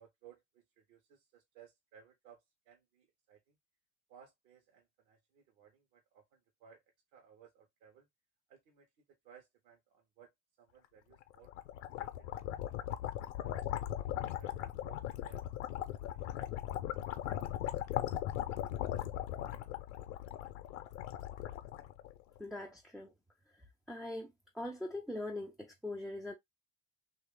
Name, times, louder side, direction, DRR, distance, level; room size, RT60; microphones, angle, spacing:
voice 1, 0.0-3.6 4.1-6.8 7.1-8.1 8.5-8.9 9.2-10.3 10.6-11.5 12.0-14.5 14.8-15.0 15.3-15.7 16.1-16.4, right 8 dB, 60° right, 1.0 m, -61 dB
sound 1, 11.2-22.4, left 12 dB, 60° left, 0.7 m, -39 dB
voice 2, 22.4-23.1 23.9-26.3, left 1 dB, ahead, 0.3 m, -42 dB
3.0 x 2.6 x 3.5 m
figure-of-eight pair, 70°, 39 cm